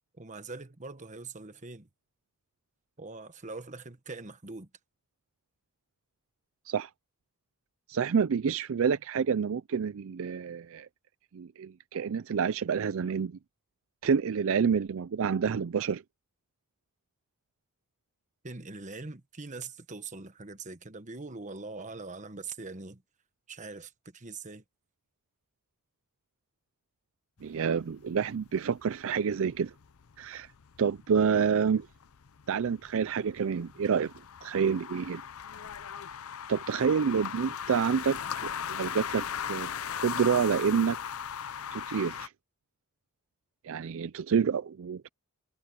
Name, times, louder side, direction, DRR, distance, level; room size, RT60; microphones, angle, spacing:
voice 1, 0.1-1.9 3.0-4.7 18.4-23.0 23.5-24.6, right 3 dB, 35° right, 1.3 m, -42 dB
voice 2, 7.9-10.9 11.3-13.3 14.0-16.0 27.4-29.7 30.2-30.5 30.8-31.9 32.5-34.1 34.4-35.2 36.5-39.7 40.0-41.0 41.7-42.3 43.6-45.1, right 6 dB, 65° right, 0.4 m, -28 dB
sound 1, 27.4-42.3, left 8 dB, 70° left, 0.6 m, -39 dB
head